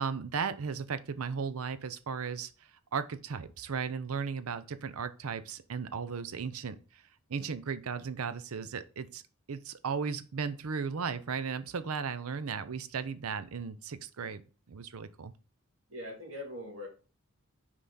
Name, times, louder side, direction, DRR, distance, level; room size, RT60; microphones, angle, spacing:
voice 1, 0.0-2.5 2.9-7.0 7.3-9.2 9.5-14.4 14.7-15.3, right 6 dB, 80° right, 0.6 m, -36 dB
voice 2, 15.9-16.9, left 1 dB, 65° right, 2.4 m, -41 dB
5.6 x 4.9 x 3.9 m
head